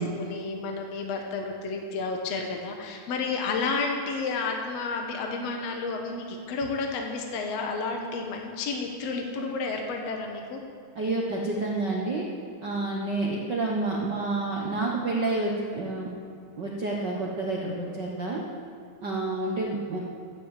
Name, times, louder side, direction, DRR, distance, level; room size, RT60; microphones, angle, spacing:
voice 1, 0.0-10.6, left 4 dB, 60° left, 2 dB, 2.0 m, -31 dB
voice 2, 10.9-12.3 12.6-16.1 16.6-18.4 19.0-20.0, right 2 dB, 65° right, -2 dB, 1.0 m, -29 dB
12.5 x 10.0 x 8.2 m, 2.3 s
omnidirectional pair, 3.9 m